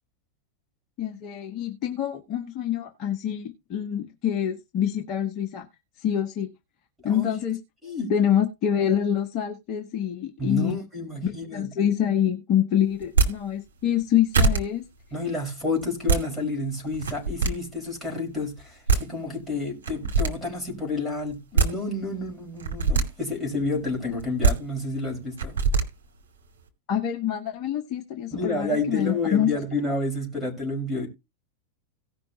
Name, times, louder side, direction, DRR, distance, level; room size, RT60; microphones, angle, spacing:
voice 1, 1.0-5.7 6.0-6.5 7.0-7.6 8.1-10.8 11.2-14.9 26.9-29.5, left 9 dB, 40° left, 1.3 m, -26 dB
voice 2, 10.4-11.9 15.1-25.6 28.3-31.1, left 2 dB, 5° right, 5.4 m, -30 dB
sound 1, 13.0-13.3 14.0-14.1 14.3-14.6 15.8-16.2 16.9-17.5 18.6-18.7 18.9-19.0 19.8-20.3 21.3-21.7 22.6-23.0 24.2-24.5 25.4-25.8, right 4 dB, 65° right, 2.6 m, -21 dB
17.5 x 6.0 x 2.9 m
figure-of-eight pair, 90°, 0 cm